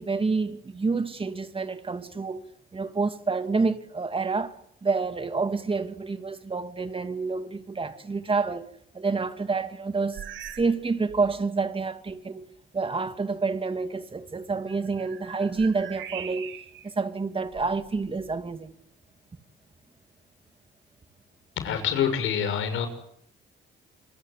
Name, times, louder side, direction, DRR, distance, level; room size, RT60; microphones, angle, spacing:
voice 1, 0.0-2.4 2.7-4.5 4.8-8.7 8.9-10.2 10.6-12.5 12.7-16.5 16.8-18.7, right 4 dB, 25° right, 2.5 m, -28 dB
sound 1, 10.1-10.8 11.1-11.4 12.1-12.2 14.6-16.9 17.5-18.5, right 9 dB, 75° right, 3.9 m, -42 dB
voice 2, 21.6-22.9, left 8 dB, 85° left, 6.6 m, -26 dB
27.5 x 24.0 x 8.4 m
cardioid pair, 90°, 20 cm